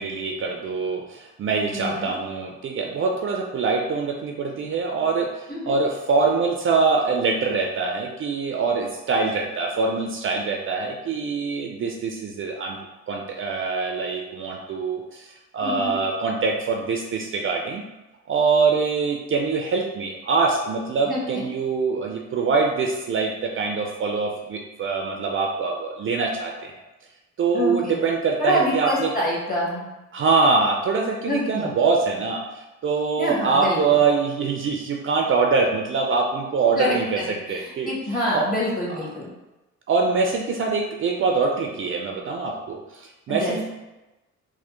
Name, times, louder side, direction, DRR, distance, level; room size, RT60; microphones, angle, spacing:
voice 1, 0.0-12.8 13.1-17.8 18.3-26.7 27.4-29.1 30.1-32.4 32.8-37.9 38.3-38.5 39.9-43.6, right 4 dB, 45° right, 2 dB, 0.4 m, -24 dB
voice 2, 1.7-2.1 5.5-5.8 15.6-15.9 21.0-21.5 27.5-28.0 28.4-29.9 31.3-31.7 33.2-34.0 36.7-37.0 37.5-39.3 43.3-43.6, left 1 dB, 30° left, -5 dB, 1.3 m, -26 dB
3.2 x 2.2 x 3.0 m, 1.0 s
cardioid pair, 90°, 30 cm